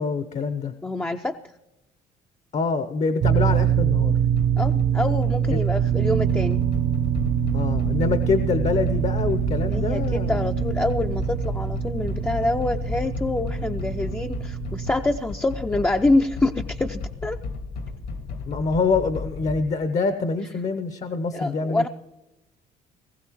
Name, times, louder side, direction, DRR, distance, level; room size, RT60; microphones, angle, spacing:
voice 1, 0.0-0.7 2.5-4.2 5.5-5.6 7.5-10.5 18.5-21.9, left 4 dB, 45° left, 10 dB, 0.9 m, -25 dB
voice 2, 0.8-1.4 4.6-6.6 9.7-17.4 21.3-21.9, left 2 dB, 10° left, 5 dB, 0.5 m, -26 dB
sound 1, 3.2-14.9, right 10 dB, 60° right, 0.7 m, -24 dB
sound 2, 4.2-19.6, left 4 dB, 70° left, 1.6 m, -33 dB
19.5 x 15.5 x 3.0 m, 0.96 s
cardioid pair, 110°, 17 cm